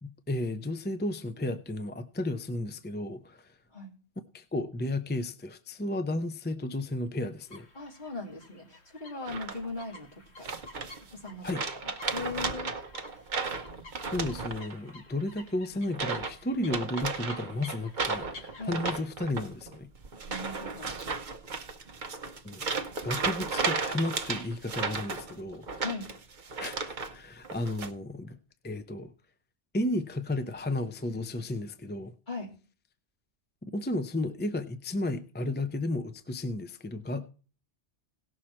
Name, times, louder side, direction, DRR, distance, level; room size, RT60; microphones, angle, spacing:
voice 1, 0.0-3.5 4.3-7.7 11.4-11.6 14.1-19.9 22.4-22.7 23.0-25.8 26.6-28.4 28.6-29.1 29.7-32.1 33.6-37.3, left 1 dB, 15° left, 0.4 m, -33 dB
sound 1, 7.4-19.1, left 3 dB, 75° left, 1.9 m, -51 dB
voice 2, 7.7-10.5 11.1-11.6 12.1-12.7 18.6-18.8 20.3-21.3 25.8-26.1 32.3-32.5, left 3 dB, 45° left, 2.5 m, -39 dB
sound 2, 9.3-9.8 10.4-11.1 11.4-14.9 15.2-15.5 15.9-16.4 16.6-27.1 27.4-27.9, right 4 dB, 50° right, 0.9 m, -34 dB
17.5 x 6.3 x 4.4 m
omnidirectional pair, 1.1 m